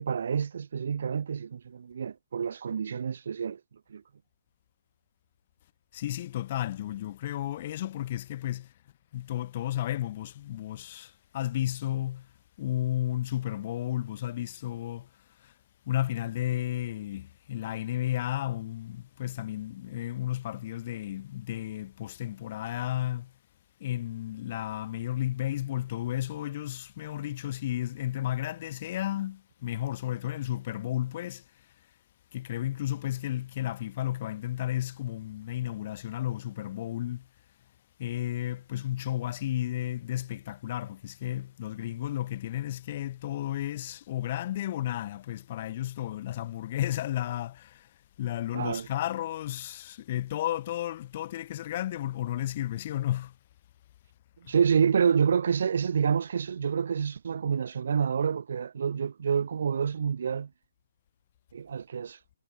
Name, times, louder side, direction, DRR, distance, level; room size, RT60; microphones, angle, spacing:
voice 1, 0.0-3.6 3.9-4.0 48.5-48.9 54.5-60.5 61.5-62.2, right 7 dB, 50° right, 0.5 m, -28 dB
voice 2, 5.9-8.7 9.1-12.3 12.6-15.1 15.4-15.5 15.9-23.3 23.8-31.7 32.3-37.3 38.0-53.4 54.4-54.6, left 13 dB, 30° left, 2.9 m, -33 dB
hypercardioid pair, 175°, 0 cm